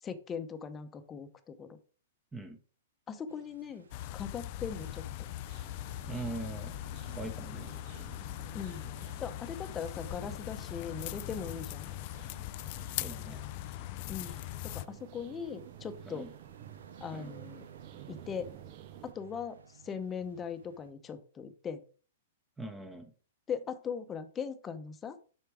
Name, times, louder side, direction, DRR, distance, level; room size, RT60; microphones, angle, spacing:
voice 1, 0.0-1.8 3.1-3.9 4.1-5.0 8.5-8.8 9.2-11.9 14.1-16.3 17.0-17.6 18.1-18.5 19.0-21.8 23.5-25.2, left 6 dB, 20° left, 10 dB, 0.8 m, -40 dB
sound 1, 3.3-20.9, right 7 dB, 85° right, 0.7 m, -57 dB
sound 2, 3.9-14.9, left 16 dB, 50° left, 0.3 m, -40 dB
sound 3, 5.5-19.1, right 12 dB, 45° right, 0.6 m, -53 dB
voice 2, 6.1-6.8 7.1-7.7 13.0-13.4 16.1-16.3 17.1-17.3 22.6-23.1, right 2 dB, 10° right, 6 dB, 0.9 m, -41 dB
6.8 x 4.5 x 4.8 m, 0.39 s
hypercardioid pair, 120°, 0 cm